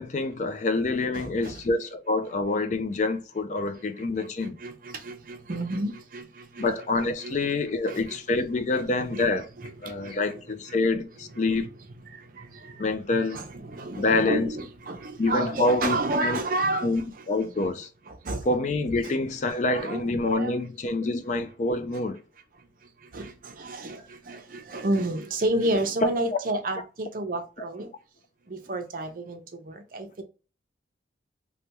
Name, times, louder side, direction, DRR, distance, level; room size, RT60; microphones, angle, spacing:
voice 1, 0.0-4.6 6.6-9.5 9.8-11.7 12.8-13.4 14.0-14.5 15.2-16.4 16.7-17.9 18.5-22.2, left 3 dB, 40° left, 0.4 m, -26 dB
voice 2, 1.1-1.6 3.7-6.7 7.2-7.3 7.9-8.4 8.7-9.3 9.6-10.4 10.7-10.8 11.3-11.7 12.0-17.7 18.1-18.5 19.0-19.1 19.7-20.0 20.3-20.6 22.6-22.7 23.0-27.9 28.5-30.2, right 2 dB, 50° right, 0.6 m, -32 dB
3.2 x 2.2 x 2.9 m
head